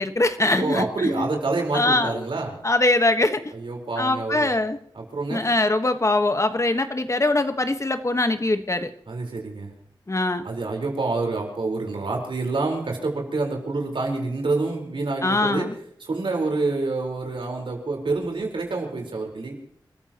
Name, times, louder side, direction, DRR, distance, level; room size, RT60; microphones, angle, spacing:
voice 1, 0.0-1.3 1.7-2.2 2.6-3.4 4.0-4.8 5.3-8.9 10.1-10.4 15.2-15.7, left 2 dB, 35° left, 8 dB, 1.4 m, -22 dB
voice 2, 0.6-2.6 3.5-4.5 4.9-5.5 9.1-9.7 10.4-15.7 16.0-19.5, right 3 dB, 90° right, 1 dB, 4.5 m, -27 dB
28.5 x 14.5 x 3.1 m, 0.68 s
wide cardioid pair, 70°, 8 cm